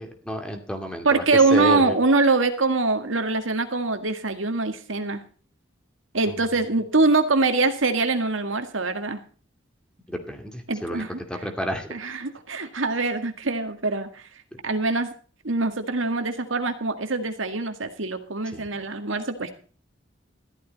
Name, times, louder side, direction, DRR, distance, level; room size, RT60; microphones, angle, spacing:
voice 1, 0.0-2.0 6.3-6.4 10.1-11.0 11.3-12.0 14.5-14.6 18.5-18.8, equal, 5° left, 4 dB, 2.4 m, -31 dB
voice 2, 1.0-5.2 6.1-9.2 10.7-11.1 11.9-14.2 14.6-15.1 15.4-19.5, right 3 dB, 90° right, 7 dB, 1.9 m, -23 dB
14.0 x 12.5 x 4.1 m, 0.41 s
head